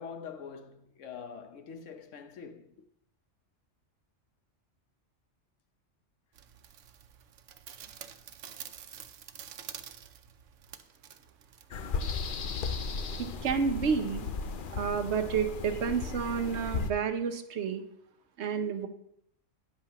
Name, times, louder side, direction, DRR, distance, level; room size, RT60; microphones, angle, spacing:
voice 1, 0.0-2.8, left 6 dB, 85° left, 1.2 m, -44 dB
sound 1, 6.3-12.3, right 9 dB, 90° right, 1.0 m, -48 dB
sound 2, 11.7-16.9, left 5 dB, 50° left, 0.7 m, -35 dB
voice 2, 13.2-14.3 14.7-17.8 18.4-18.9, right 6 dB, 65° right, 1.1 m, -30 dB
13.0 x 9.8 x 3.0 m
omnidirectional pair, 1.3 m